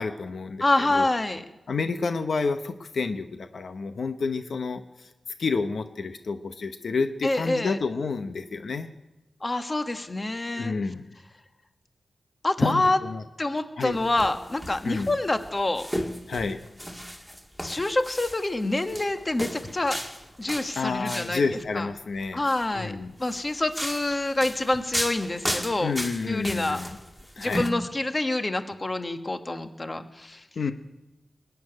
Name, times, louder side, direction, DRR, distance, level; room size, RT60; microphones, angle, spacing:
voice 1, 0.0-1.1 1.7-5.1 5.4-8.9 10.5-11.1 12.6-12.8 13.1-13.2 13.8-14.0 14.8-15.2 16.3-16.6 20.8-22.4 22.7-23.1 25.8-26.9 27.4-27.7 30.6-30.7, left 4 dB, 65° left, 8 dB, 0.8 m, -29 dB
voice 2, 0.6-1.4 7.2-7.8 9.4-10.7 12.4-13.0 13.4-15.9 17.6-20.0 20.4-21.4 21.7-21.9 22.3-22.9 23.2-25.9 26.2-26.8 27.4-30.4, left 2 dB, 25° left, 7 dB, 1.3 m, -26 dB
sound 1, 13.9-21.4 22.3-22.7 23.2-27.7, equal, 5° left, 2.0 m, -35 dB
21.0 x 7.0 x 9.7 m, 1.0 s
wide cardioid pair, 95°, 0 cm